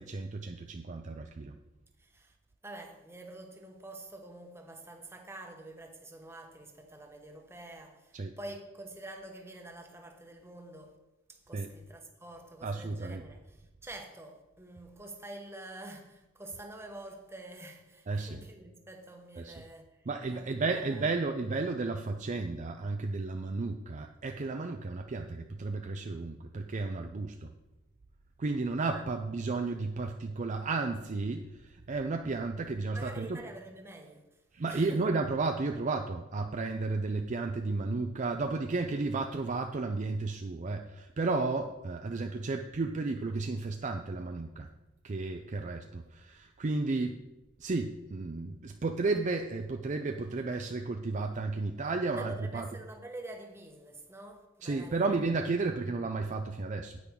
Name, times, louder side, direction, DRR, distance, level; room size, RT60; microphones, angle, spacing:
voice 1, 0.0-1.6 8.1-8.4 11.5-11.7 12.6-13.2 18.1-18.4 19.4-19.5 20.1-27.5 28.4-33.4 34.5-44.7 45.0-47.2 47.6-52.8 54.6-57.0, right 3 dB, 40° right, 0.5 m, -33 dB
voice 2, 2.0-2.4 2.6-11.0 11.3-20.1 20.3-21.1 28.9-29.1 32.9-35.0 52.1-55.1 55.5-55.7, right 2 dB, 10° right, 1.1 m, -47 dB
9.9 x 8.5 x 3.7 m
head